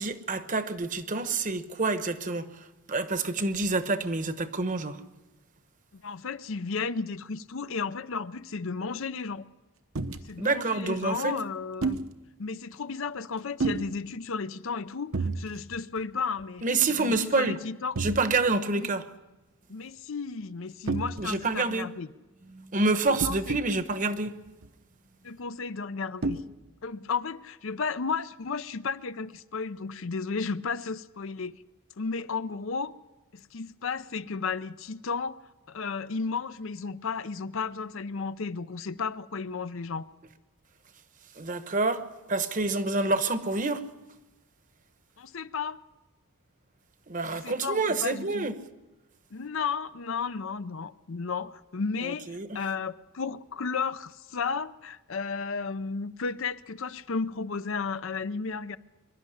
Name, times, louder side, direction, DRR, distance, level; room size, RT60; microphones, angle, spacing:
voice 1, 0.0-2.5 2.9-5.0 10.4-11.4 16.6-17.6 18.0-19.0 21.2-21.9 22.5-24.3 41.4-43.8 47.1-48.5 52.3-52.6, right 3 dB, 35° right, 1.0 m, -27 dB
voice 2, 5.9-9.4 10.2-12.0 12.4-18.0 18.7-18.9 19.7-22.1 23.1-23.6 25.2-26.4 26.8-31.6 32.0-32.9 33.3-40.1 45.2-45.8 47.3-48.5 49.3-58.8, left 5 dB, 60° left, 0.6 m, -33 dB
sound 1, 9.9-10.2 11.8-12.1 13.6-13.9 15.1-15.4 15.7-16.0 16.4-16.5 17.9-18.2 20.9-21.5 23.2-23.7 24.6-24.7 26.2-26.4, right 3 dB, 65° right, 1.0 m, -30 dB
23.5 x 11.5 x 9.8 m
head